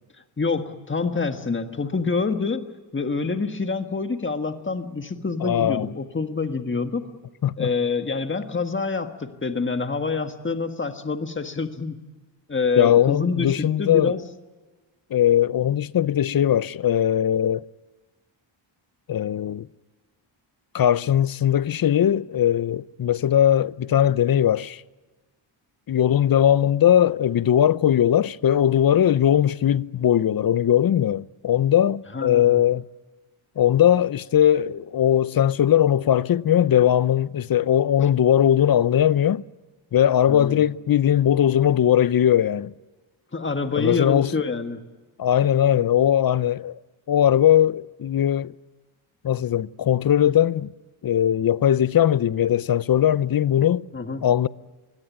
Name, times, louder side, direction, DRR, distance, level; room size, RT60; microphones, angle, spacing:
voice 1, 0.4-2.6 2.9-7.1 7.6-12.0 12.5-14.2 32.1-32.6 40.3-40.6 43.3-44.8 53.9-54.2, left 4 dB, 25° left, 1.7 m, -26 dB
voice 2, 5.4-5.9 7.4-7.7 12.8-14.2 15.1-17.6 19.1-19.7 20.7-24.8 25.9-32.8 33.6-39.4 39.9-42.7 43.8-44.3 45.2-46.8 47.1-48.5 49.2-50.7 51.0-53.9 54.2-54.5, left 10 dB, 45° left, 0.7 m, -19 dB
24.0 x 17.0 x 9.2 m
cardioid pair, 70°, 49 cm